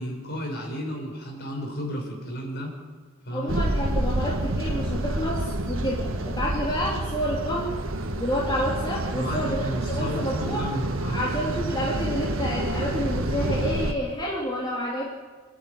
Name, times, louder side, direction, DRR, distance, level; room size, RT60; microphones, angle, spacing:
voice 1, 0.0-2.7 3.2-3.5 9.1-11.2, equal, 50° left, 0 dB, 6.1 m, -33 dB
voice 2, 3.3-7.8 8.2-10.6 11.1-15.0, equal, 20° left, -5 dB, 2.9 m, -29 dB
sound 1, 3.5-13.9, right 1 dB, 70° right, 1.6 m, -28 dB
27.0 x 10.0 x 9.5 m, 1.5 s
head